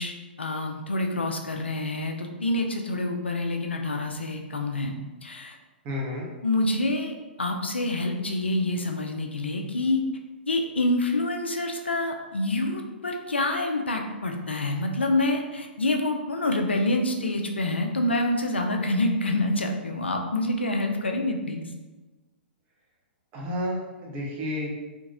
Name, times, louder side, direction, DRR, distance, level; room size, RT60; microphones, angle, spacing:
voice 1, 0.0-4.9 5.2-5.6 6.4-10.1 10.5-21.6, left 2 dB, 75° left, 3 dB, 0.4 m, -27 dB
voice 2, 5.8-6.2 23.3-24.7, left 1 dB, 30° right, -3 dB, 0.7 m, -31 dB
2.8 x 2.5 x 2.5 m, 1.2 s
figure-of-eight pair, 110°, 6 cm